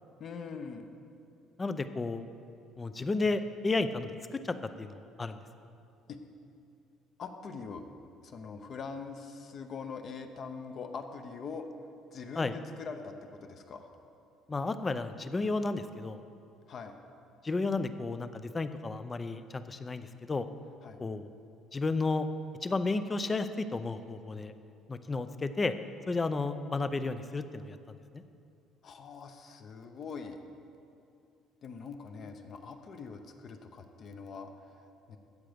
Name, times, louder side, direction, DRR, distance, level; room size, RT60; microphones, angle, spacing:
voice 1, 0.2-0.9 6.1-6.2 7.2-7.8 8.2-11.7 12.1-13.9 16.7-17.0 20.8-21.0 28.8-30.5 31.6-35.2, left 5 dB, 40° left, 6 dB, 0.8 m, -43 dB
voice 2, 1.6-2.2 2.8-5.4 12.4-12.6 14.5-16.2 17.4-20.5 21.0-21.3 21.7-22.3 22.6-24.5 24.9-25.7 26.1-27.8 28.1-28.2, left 3 dB, 15° left, 11 dB, 0.5 m, -32 dB
14.0 x 8.8 x 5.1 m, 2.7 s
cardioid pair, 155°, 0 cm